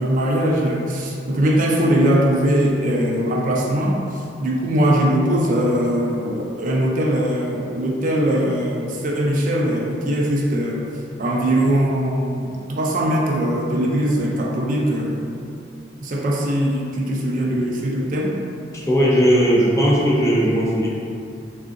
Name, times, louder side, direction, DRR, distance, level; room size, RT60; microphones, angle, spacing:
voice 1, 0.0-10.9 11.2-15.3 16.0-18.4, right 1 dB, 50° right, -2 dB, 0.3 m, -21 dB
voice 2, 18.7-20.9, equal, 15° left, -6 dB, 0.5 m, -17 dB
3.6 x 2.4 x 2.5 m, 2.5 s
head